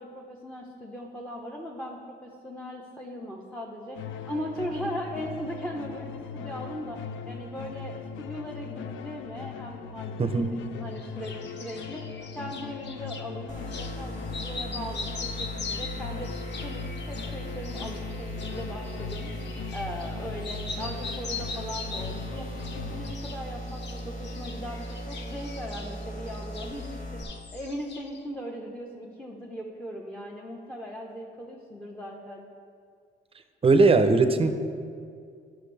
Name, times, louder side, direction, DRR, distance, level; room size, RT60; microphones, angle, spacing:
voice 1, 0.0-4.0 4.3-32.4, equal, 5° left, -1 dB, 0.8 m, -39 dB
sound 1, 3.9-23.1, left 6 dB, 75° left, 0.4 m, -39 dB
voice 2, 10.2-10.6 33.6-34.5, right 3 dB, 30° right, 8 dB, 0.6 m, -19 dB
sound 2, 11.0-13.3 13.7-13.9 14.3-20.1 20.4-22.2 22.6-23.4 23.7-26.9 27.2-28.2, left 4 dB, 60° left, 0.9 m, -40 dB
sound 3, 13.5-27.2, equal, 40° left, 1.3 m, -38 dB
10.5 x 6.0 x 3.3 m, 2.2 s
cardioid pair, 90°, 20 cm